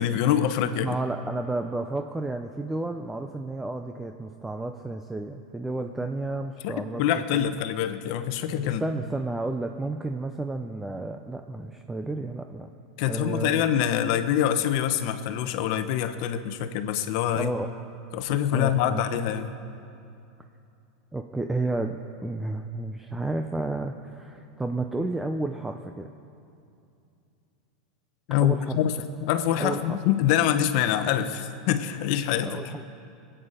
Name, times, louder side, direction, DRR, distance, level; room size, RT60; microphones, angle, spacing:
voice 1, 0.0-1.0 6.6-6.7 7.0-8.8 13.0-17.5 18.1-19.5 28.3-29.0 29.2-32.7, left 10 dB, 55° left, 10 dB, 0.9 m, -25 dB
voice 2, 0.8-7.5 8.6-12.7 13.1-13.6 17.4-17.7 18.3-19.1 21.1-26.1 28.4-28.8 29.6-30.0 32.4-32.8, right 2 dB, 5° right, 5 dB, 0.5 m, -32 dB
21.5 x 9.0 x 5.1 m, 2.6 s
supercardioid pair, 135°, 4 cm